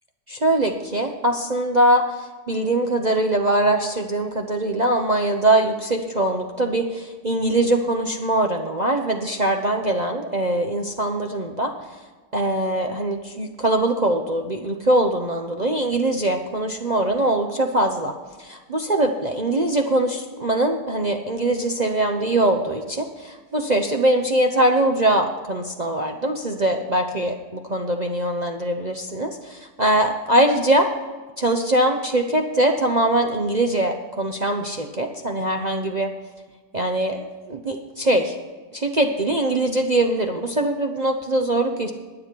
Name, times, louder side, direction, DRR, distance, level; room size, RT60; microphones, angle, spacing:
voice 1, 0.3-11.7 12.3-30.9 31.4-36.1 36.7-38.4 38.7-41.9, right 1 dB, 35° right, 2 dB, 0.7 m, -22 dB
21.0 x 7.6 x 4.6 m, 1.3 s
omnidirectional pair, 1.8 m